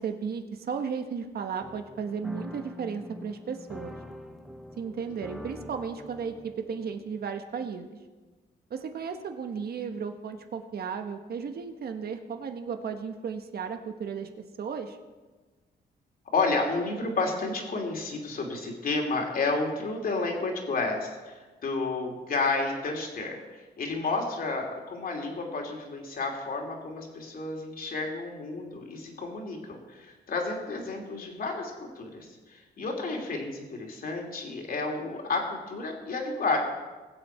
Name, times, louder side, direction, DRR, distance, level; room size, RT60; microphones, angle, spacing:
voice 1, 0.0-3.9 4.8-8.0 8.7-14.3 14.6-15.0, right 6 dB, 60° right, 6 dB, 1.3 m, -34 dB
sound 1, 1.6-7.2, left 1 dB, ahead, 1.0 m, -44 dB
voice 2, 5.3-5.7 16.3-23.4 23.8-36.6, left 3 dB, 55° left, 1 dB, 2.8 m, -31 dB
20.5 x 7.9 x 4.5 m, 1.3 s
cardioid pair, 115°, 18 cm